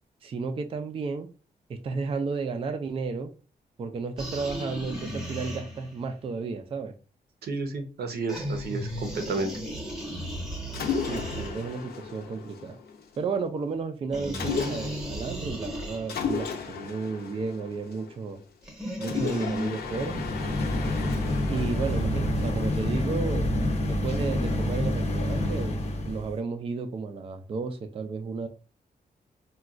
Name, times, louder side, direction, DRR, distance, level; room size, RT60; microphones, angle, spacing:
voice 1, 0.2-1.3 1.7-3.3 3.8-6.9 11.1-12.8 13.2-18.4 19.0-20.3 21.4-23.5 23.8-28.5, right 4 dB, 35° right, 0.3 m, -33 dB
sound 1, 4.2-6.1 8.3-12.0 14.1-16.4 18.6-19.7, equal, 5° right, 0.8 m, -35 dB
voice 2, 7.4-9.5, right 3 dB, 85° right, 0.7 m, -31 dB
Mechanisms, 10.7-13.2 14.3-15.2 16.1-18.4 19.0-23.2, left 6 dB, 85° left, 0.6 m, -35 dB
sound 2, 19.7-26.3, left 1 dB, 45° left, 0.6 m, -27 dB
4.0 x 2.3 x 2.4 m
wide cardioid pair, 170°, 16 cm